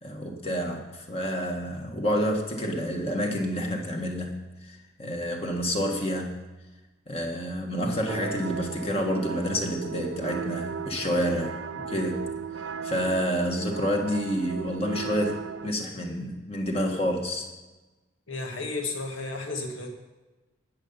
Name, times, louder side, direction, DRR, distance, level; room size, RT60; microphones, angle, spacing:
voice 1, 0.0-6.5 7.1-12.3 12.8-17.5, equal, 30° left, 1 dB, 1.6 m, -29 dB
sound 1, 8.1-15.7, right 6 dB, 80° right, 0.6 m, -36 dB
voice 2, 18.3-19.9, left 3 dB, 85° left, 2 dB, 2.1 m, -33 dB
18.5 x 6.7 x 5.7 m, 1.1 s
head